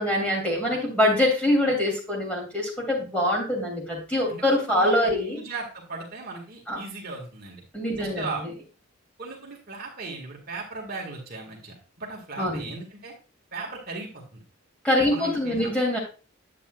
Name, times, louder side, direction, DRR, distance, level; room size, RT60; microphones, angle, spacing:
voice 1, 0.0-5.4 6.7-6.8 7.7-8.5 12.4-12.7 14.8-16.0, left 1 dB, 5° left, -2 dB, 3.0 m, -24 dB
voice 2, 4.7-7.6 8.0-8.4 9.2-13.1 13.5-14.4 15.1-15.7, right 3 dB, 45° right, -1 dB, 2.0 m, -37 dB
9.9 x 8.0 x 2.4 m, 0.34 s
head